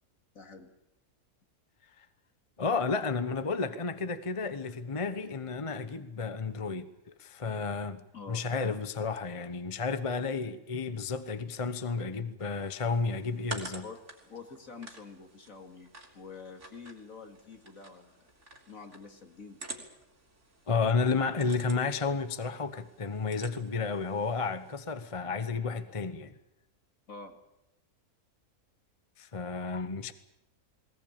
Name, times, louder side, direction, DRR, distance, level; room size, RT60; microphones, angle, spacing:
voice 1, 0.3-0.7 8.1-8.4 13.8-18.3 18.7-19.6 27.1-27.4, left 4 dB, 60° left, 2.7 m, -47 dB
voice 2, 2.6-6.9 7.2-8.0 8.3-13.8 20.7-26.3 29.2-30.1, left 4 dB, 25° left, 0.9 m, -32 dB
sound 1, 12.4-24.9, right 2 dB, 50° right, 3.8 m, -49 dB
20.5 x 20.0 x 8.8 m
omnidirectional pair, 1.6 m